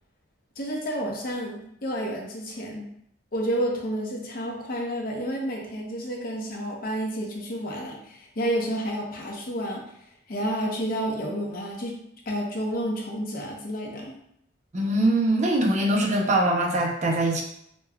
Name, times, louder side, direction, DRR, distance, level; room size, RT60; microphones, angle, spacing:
voice 1, 0.6-2.8 3.3-9.8 10.3-11.9 12.3-14.1, equal, 50° left, -1 dB, 0.7 m, -30 dB
voice 2, 14.7-17.4, right 1 dB, 40° right, -1 dB, 0.6 m, -22 dB
5.0 x 2.2 x 2.3 m, 0.73 s
head